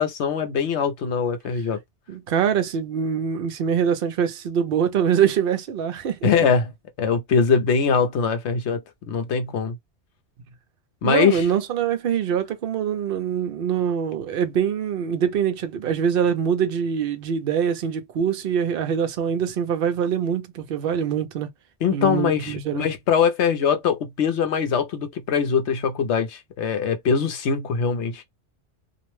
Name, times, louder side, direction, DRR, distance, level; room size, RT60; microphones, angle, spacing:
voice 1, 0.0-1.8 6.2-6.7 7.0-9.8 11.0-11.4 21.8-28.2, left 6 dB, 75° left, 0.9 m, -22 dB
voice 2, 2.1-6.3 11.0-21.5 21.9-22.9, right 8 dB, 60° right, 0.7 m, -24 dB
2.5 x 2.1 x 3.0 m
omnidirectional pair, 1.2 m